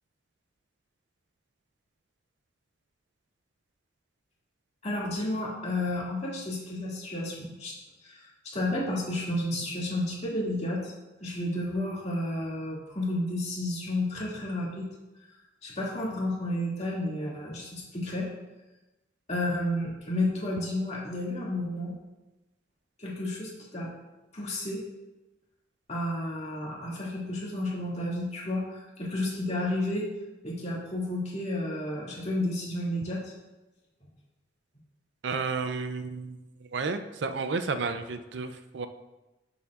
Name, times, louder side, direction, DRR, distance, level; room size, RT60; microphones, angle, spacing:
voice 1, 4.8-7.8 8.0-10.9 11.2-14.9 15.6-18.3 19.3-21.9 23.0-23.9 24.3-24.8 25.9-30.1 30.4-33.3, left 1 dB, 35° left, -5 dB, 2.2 m, -31 dB
voice 2, 35.2-38.9, right 4 dB, 65° right, 9 dB, 0.5 m, -32 dB
10.5 x 7.0 x 2.4 m, 1.0 s
head